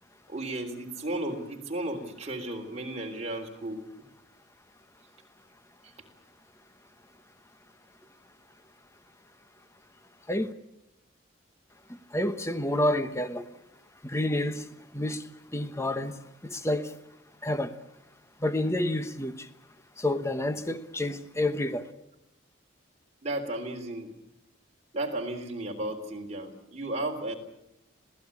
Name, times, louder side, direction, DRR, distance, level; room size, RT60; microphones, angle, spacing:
voice 1, 0.3-3.8 5.8-5.9 23.2-24.1 24.9-27.3, right 1 dB, 35° right, 2 dB, 3.5 m, -34 dB
voice 2, 11.9-13.5 14.0-16.9 17.4-17.8 18.4-19.5 20.0-21.9, left 1 dB, 15° left, 10 dB, 1.0 m, -29 dB
26.5 x 17.5 x 8.5 m, 0.84 s
head